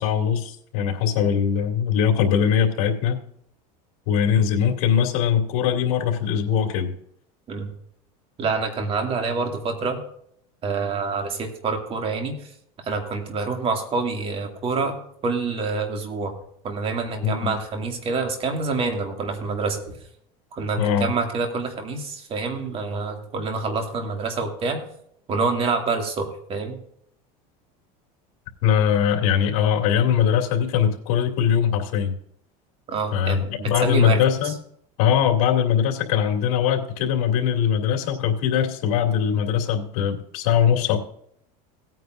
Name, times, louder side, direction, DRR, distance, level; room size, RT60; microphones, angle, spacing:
voice 1, 0.0-3.2 4.1-6.9 17.2-17.5 20.8-21.1 28.6-32.1 33.1-34.5 35.0-41.0, left 8 dB, 70° left, 2 dB, 2.6 m, -21 dB
voice 2, 8.4-10.0 10.6-12.3 12.8-15.0 15.2-16.3 16.6-20.0 20.5-24.8 25.3-26.8 32.9-34.6, right 4 dB, 30° right, 4 dB, 2.3 m, -27 dB
17.5 x 9.3 x 2.6 m, 0.69 s
supercardioid pair, 140°, 18 cm